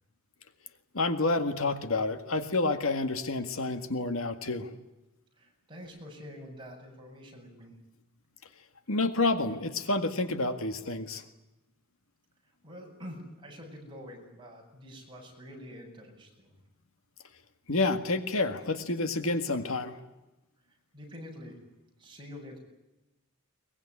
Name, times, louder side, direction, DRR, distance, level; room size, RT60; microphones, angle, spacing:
voice 1, 0.9-4.7 8.9-11.2 17.7-20.0, left 2 dB, 70° left, 8 dB, 1.9 m, -29 dB
voice 2, 5.3-7.8 12.6-16.6 20.7-21.6 22.0-22.6, equal, 20° right, 0 dB, 7.5 m, -46 dB
23.0 x 21.5 x 9.9 m, 0.98 s
head